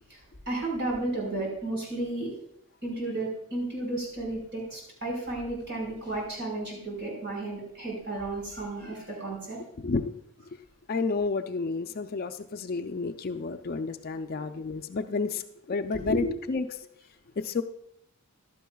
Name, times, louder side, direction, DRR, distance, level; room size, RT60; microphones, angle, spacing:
voice 1, 0.4-2.3 2.8-9.6 15.9-16.3, right 2 dB, 50° right, -2 dB, 4.7 m, -33 dB
voice 2, 9.8-10.1 10.5-10.6 10.9-16.8 17.4-17.6, left 4 dB, 40° left, 8 dB, 0.4 m, -31 dB
14.5 x 11.5 x 2.3 m, 0.72 s
head